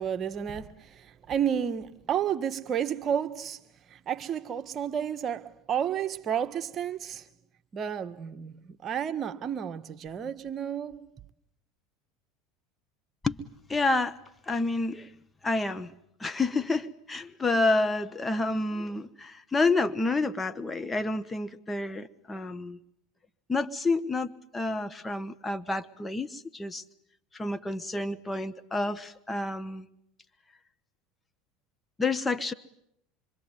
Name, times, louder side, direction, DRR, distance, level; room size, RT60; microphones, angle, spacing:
voice 1, 0.0-3.6 3.9-7.3 7.7-11.0, right 8 dB, 40° right, 1.5 m, -31 dB
voice 2, 13.7-14.2 14.5-15.1 15.4-15.9 16.2-22.8 23.5-26.8 27.3-29.9 32.0-32.5, left 3 dB, 15° left, 1.3 m, -29 dB
26.0 x 24.5 x 9.3 m
hypercardioid pair, 80°, 0 cm